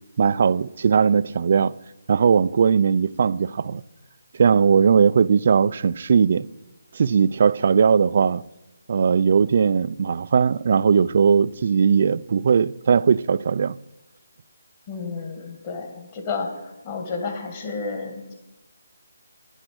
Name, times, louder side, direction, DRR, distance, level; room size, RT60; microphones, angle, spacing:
voice 1, 0.2-1.7 2.1-3.8 4.4-6.5 6.9-8.4 8.9-13.8, right 6 dB, 50° right, 0.4 m, -19 dB
voice 2, 14.9-18.3, left 4 dB, 30° left, 2.2 m, -31 dB
9.8 x 8.8 x 7.7 m
hypercardioid pair, 160°, 0 cm